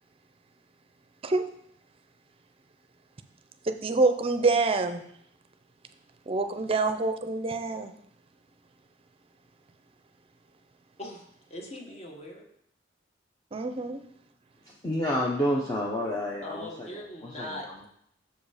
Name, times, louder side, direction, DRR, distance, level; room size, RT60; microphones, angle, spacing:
voice 1, 3.7-5.0 6.3-7.9 13.5-14.0, right 3 dB, 30° right, 8 dB, 0.5 m, -26 dB
voice 2, 11.5-12.4 16.4-17.9, left 1 dB, 35° left, 1 dB, 1.3 m, -40 dB
voice 3, 14.6-17.8, equal, 20° left, -3 dB, 0.8 m, -30 dB
6.8 x 5.1 x 4.9 m, 0.69 s
head